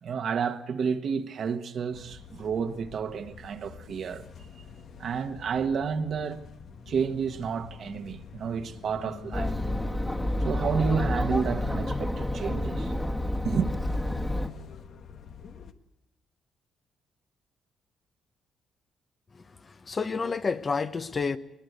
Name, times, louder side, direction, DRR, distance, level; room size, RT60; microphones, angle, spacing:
voice 1, 0.0-4.2 5.0-6.4 6.9-9.5 10.4-12.9 13.4-13.7, right 6 dB, 60° right, 1.5 m, -30 dB
sound 1, 1.9-15.7, left 6 dB, 65° left, 1.5 m, -45 dB
Chatter, 9.3-14.5, left 1 dB, 10° left, 1.6 m, -29 dB
voice 2, 19.3-21.4, left 4 dB, 35° left, 1.1 m, -30 dB
21.0 x 20.5 x 8.1 m
cardioid pair, 90°, 0 cm